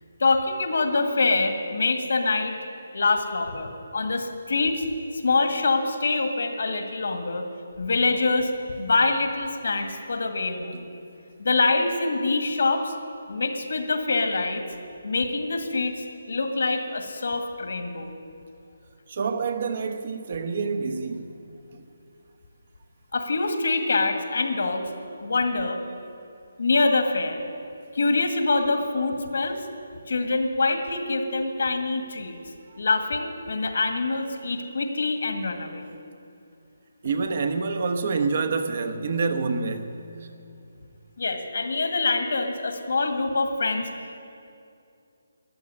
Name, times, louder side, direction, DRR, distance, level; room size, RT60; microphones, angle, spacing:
voice 1, 0.2-2.6 2.9-4.9 5.1-7.4 7.8-8.5 8.8-10.9 11.4-12.9 13.3-14.6 15.0-18.1 23.1-24.8 25.2-25.8 26.6-27.4 27.9-29.7 30.1-32.4 32.8-35.9 41.2-43.9, left 3 dB, 70° left, 1.9 m, -25 dB
voice 2, 19.1-21.3 37.0-40.0, right 4 dB, 45° right, 1.1 m, -27 dB
14.0 x 10.0 x 9.8 m
hypercardioid pair, 165°, 0 cm